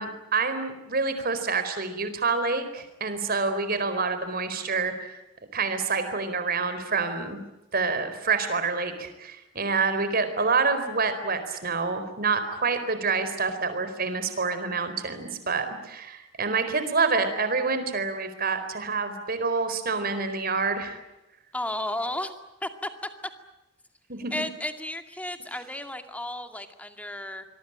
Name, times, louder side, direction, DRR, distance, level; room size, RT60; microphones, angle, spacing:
voice 1, 0.0-5.2 5.5-7.4 7.7-21.0 24.1-24.3, right 4 dB, 50° right, 10 dB, 4.4 m, -27 dB
voice 2, 21.5-22.3 22.6-22.9 24.3-27.4, left 1 dB, 5° left, 7 dB, 2.3 m, -33 dB
26.0 x 22.5 x 9.0 m, 0.95 s
head